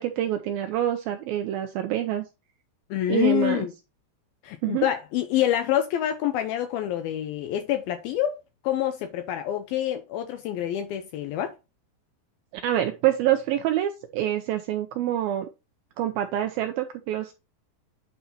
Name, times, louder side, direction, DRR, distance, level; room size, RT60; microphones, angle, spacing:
voice 1, 0.0-2.3 3.1-3.7 4.6-4.9 12.5-15.5 16.0-17.3, right 12 dB, 85° right, 2.1 m, -26 dB
voice 2, 2.9-3.7 4.4-8.4 8.6-11.5, left 12 dB, 80° left, 2.2 m, -26 dB
9.3 x 4.0 x 4.1 m
omnidirectional pair, 4.9 m